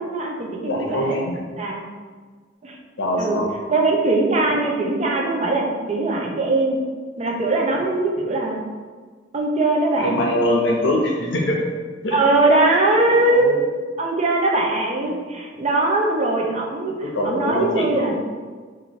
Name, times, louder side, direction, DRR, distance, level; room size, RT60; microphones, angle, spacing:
voice 1, 0.0-1.2 1.6-1.8 2.6-2.8 3.2-3.4 3.7-6.8 7.2-8.6 9.3-10.2 12.1-13.5 14.0-17.0 17.2-18.1, right 2 dB, 40° right, 0 dB, 0.5 m, -21 dB
voice 2, 0.7-1.4 3.0-3.5 10.0-11.6 12.0-12.2 13.3-13.6 15.0-15.1 17.0-18.2, left 1 dB, 80° left, 0 dB, 0.7 m, -23 dB
3.0 x 2.6 x 4.0 m, 1.5 s
head